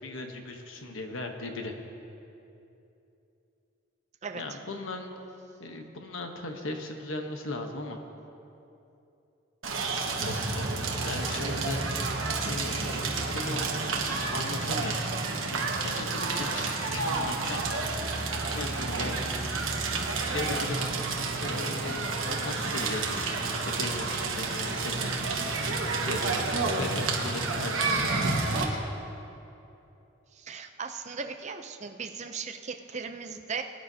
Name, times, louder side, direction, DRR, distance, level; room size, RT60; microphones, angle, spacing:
voice 1, 0.0-1.7 4.3-5.1 5.6-8.0 9.9-11.8 12.5-13.6 14.3-15.1 15.5-17.8 18.3-19.3 20.3-20.9 21.4-23.3 23.6-25.1 25.9-26.4 26.7-28.8, left 2 dB, 75° left, 4 dB, 1.1 m, -37 dB
voice 2, 4.2-4.6 30.3-33.6, right 5 dB, 35° right, 6 dB, 0.5 m, -37 dB
Crackle, 9.6-28.6, right 3 dB, 80° right, 1.3 m, -30 dB
21.0 x 10.0 x 2.8 m, 2.8 s
head